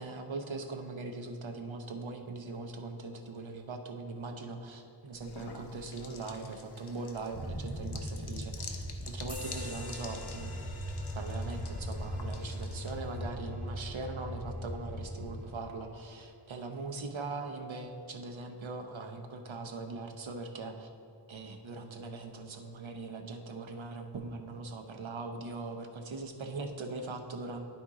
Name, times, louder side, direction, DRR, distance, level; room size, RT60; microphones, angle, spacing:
voice 1, 0.0-10.5 11.1-20.9 21.3-27.7, right 3 dB, 75° right, 4 dB, 0.8 m, -41 dB
sound 1, 5.1-13.2, left 4 dB, 55° left, 0.7 m, -49 dB
sound 2, 7.3-15.4, equal, 10° right, 1.7 m, -39 dB
sound 3, 9.3-16.4, left 2 dB, 15° left, 1.4 m, -50 dB
11.0 x 4.4 x 3.7 m, 2.6 s
wide cardioid pair, 60°, 47 cm